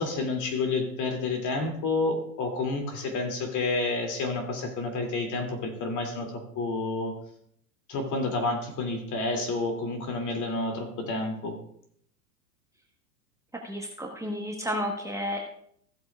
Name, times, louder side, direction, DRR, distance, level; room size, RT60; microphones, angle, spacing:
voice 1, 0.0-7.2 7.9-11.6, left 3 dB, 40° left, 4 dB, 2.7 m, -29 dB
voice 2, 13.6-15.4, equal, 5° right, -1 dB, 1.2 m, -32 dB
16.0 x 7.6 x 2.4 m, 0.68 s
hypercardioid pair, 100°, 48 cm